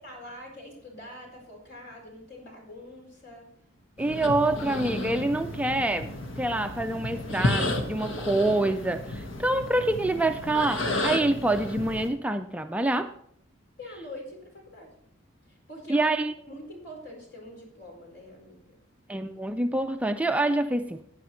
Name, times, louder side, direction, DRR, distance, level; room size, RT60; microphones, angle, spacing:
voice 1, 0.0-3.5 13.8-14.9 15.5-16.2 16.5-18.6, equal, 60° left, 0 dB, 4.4 m, -44 dB
sound 1, 4.0-12.1, left 1 dB, 75° left, 1.5 m, -32 dB
voice 2, 4.0-6.1 6.4-13.1 15.9-16.3 19.1-21.1, right 2 dB, 5° right, 7 dB, 0.3 m, -26 dB
15.0 x 9.4 x 3.1 m, 0.66 s
head